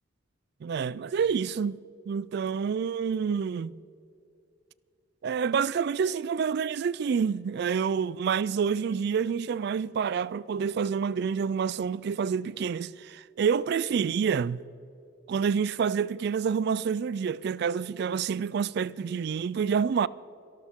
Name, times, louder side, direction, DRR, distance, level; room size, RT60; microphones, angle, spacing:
voice 1, 0.6-1.8 2.1-3.7 5.2-14.6 15.3-20.1, right 6 dB, 60° right, 0.3 m, -28 dB
25.0 x 12.5 x 3.7 m
head